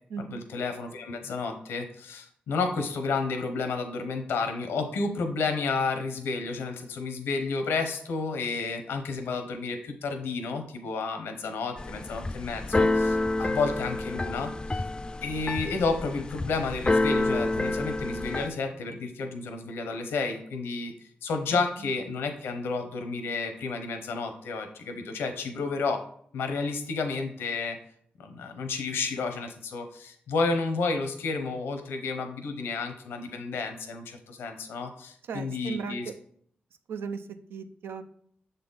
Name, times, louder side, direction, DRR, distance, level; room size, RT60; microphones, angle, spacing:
voice 1, 0.2-14.8 15.2-20.9 21.2-26.0 26.3-27.8 28.2-36.1, left 4 dB, 90° left, 6 dB, 0.7 m, -31 dB
Keyboard (musical), 11.8-18.5, left 2 dB, 20° left, 0.4 m, -28 dB
voice 2, 35.3-36.0 36.9-38.0, right 5 dB, 85° right, 8 dB, 0.5 m, -36 dB
6.7 x 4.1 x 3.8 m, 0.63 s
cardioid pair, 50°, 4 cm